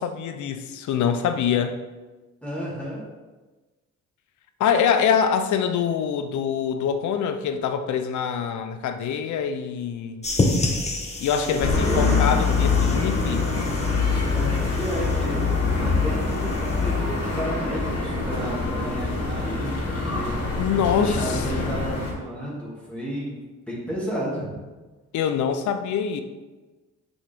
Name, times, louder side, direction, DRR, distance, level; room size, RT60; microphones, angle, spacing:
voice 1, 0.0-1.8 4.6-10.3 11.2-13.4 20.6-21.8 25.1-26.2, left 7 dB, 70° left, 9 dB, 0.7 m, -24 dB
voice 2, 2.4-3.0 11.3-11.6 11.8-12.2 14.3-15.5 15.8-20.6 21.0-23.3 23.7-24.5, equal, 5° left, -7 dB, 2.4 m, -32 dB
sound 1, 10.2-17.4, left 2 dB, 20° left, 1.3 m, -30 dB
sound 2, 11.6-22.1, left 4 dB, 55° left, 2.5 m, -24 dB
6.8 x 6.4 x 3.6 m, 1.2 s
cardioid pair, 90°, 30 cm